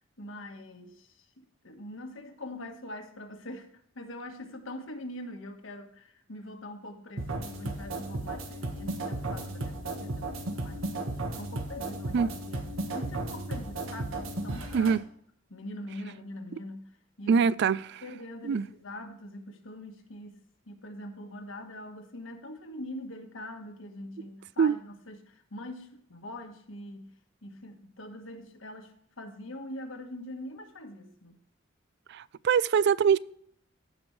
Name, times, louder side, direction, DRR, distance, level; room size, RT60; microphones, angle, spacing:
voice 1, 0.2-3.7 3.9-15.0 15.5-16.9 17.2-17.4 18.0-20.4 20.7-27.1 27.4-31.4, left 1 dB, 75° left, 1.4 m, -43 dB
sound 1, 7.2-15.0, right 2 dB, 90° right, 1.4 m, -35 dB
voice 2, 17.3-18.0 18.4-18.6 24.6-24.7 32.1-33.2, right 6 dB, 55° right, 0.3 m, -24 dB
15.5 x 5.3 x 3.2 m
head